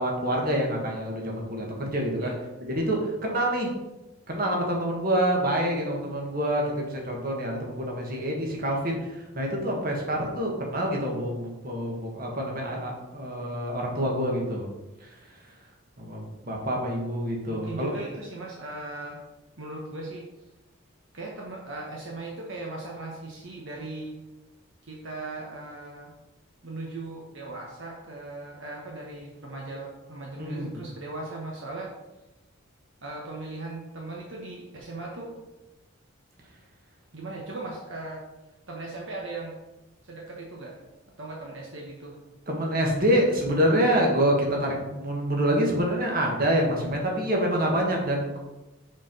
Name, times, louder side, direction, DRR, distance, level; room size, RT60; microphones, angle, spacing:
voice 1, 0.0-2.3 2.7-3.7 4.3-14.7 15.0-15.1 16.0-17.9 30.3-30.8 42.5-48.4, right 1 dB, 40° right, -1 dB, 1.7 m, -26 dB
voice 2, 17.5-19.2 19.6-20.3 21.1-24.2 24.9-26.1 26.6-31.9 33.0-35.3 37.1-38.2 38.7-39.6 40.0-40.8 41.2-42.2, right 2 dB, 65° right, -2 dB, 1.2 m, -38 dB
7.0 x 4.6 x 5.3 m, 1.0 s
head